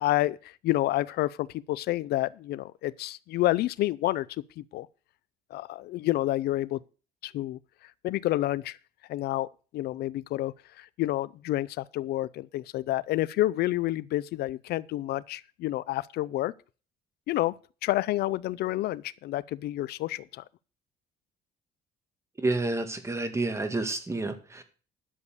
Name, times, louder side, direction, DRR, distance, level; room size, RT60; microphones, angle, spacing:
voice 1, 0.0-4.3 4.6-4.9 5.5-6.8 7.2-7.6 8.0-8.8 9.1-9.5 9.7-16.5 17.3-20.4, left 16 dB, 70° left, 0.5 m, -29 dB
voice 2, 22.4-24.6, right 2 dB, 15° right, 2.1 m, -29 dB
11.0 x 7.1 x 6.7 m
cardioid pair, 110°, 17 cm